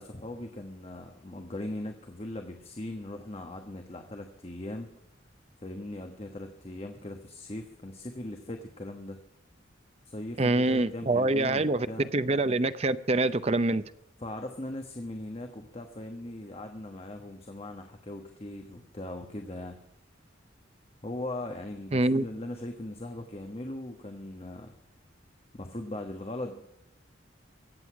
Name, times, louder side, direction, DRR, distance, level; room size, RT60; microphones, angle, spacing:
voice 1, 0.0-4.9 5.6-9.2 10.1-12.1 14.2-19.8 21.0-24.7 25.5-26.6, left 1 dB, 30° left, 1.2 m, -39 dB
voice 2, 10.4-11.9 12.1-13.8 21.9-22.2, right 2 dB, 30° right, 0.6 m, -25 dB
23.5 x 8.2 x 4.7 m
head